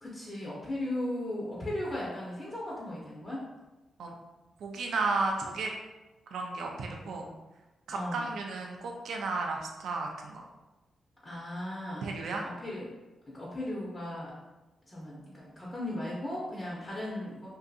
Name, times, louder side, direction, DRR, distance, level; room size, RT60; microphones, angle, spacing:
voice 1, 0.0-3.4 7.9-8.3 11.2-12.1 12.4-12.9 13.3-14.3 14.9-17.5, left 1 dB, 30° left, -6 dB, 0.7 m, -37 dB
voice 2, 4.6-5.7 6.3-7.3 7.9-10.4 12.0-12.4, right 3 dB, 80° right, 2 dB, 0.3 m, -33 dB
2.6 x 2.5 x 2.3 m, 1.1 s
cardioid pair, 70°, 0 cm